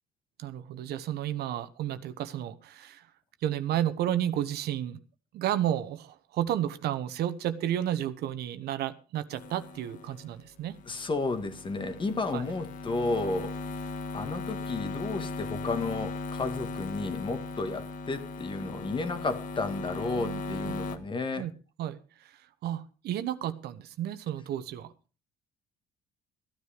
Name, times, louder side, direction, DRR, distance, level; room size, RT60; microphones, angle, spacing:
voice 1, 0.4-3.1 3.4-5.0 5.3-10.8 12.3-12.4 20.1-20.7 21.3-21.5 21.8-24.9, right 11 dB, 75° right, 1.1 m, -32 dB
sound 1, 9.3-21.0, left 3 dB, 50° left, 1.6 m, -38 dB
voice 2, 10.9-13.6 14.1-21.5, left 3 dB, 30° left, 1.7 m, -32 dB
14.5 x 9.8 x 5.0 m
cardioid pair, 110°, 17 cm